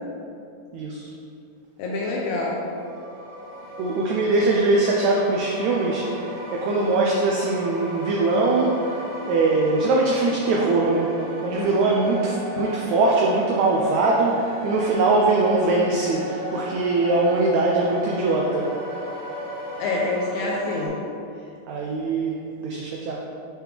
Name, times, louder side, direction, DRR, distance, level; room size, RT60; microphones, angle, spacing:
voice 1, 0.7-1.1 3.8-9.0 9.3-11.1 11.4-18.7 21.7-22.3 22.6-23.2, right 3 dB, 90° right, -1 dB, 1.6 m, -22 dB
voice 2, 1.8-2.6 11.5-11.8 19.8-21.0, left 2 dB, 80° left, -2 dB, 1.7 m, -26 dB
sound 1, 2.7-20.9, right 1 dB, 55° right, 1.8 m, -36 dB
6.2 x 4.5 x 3.4 m, 2.6 s
omnidirectional pair, 3.8 m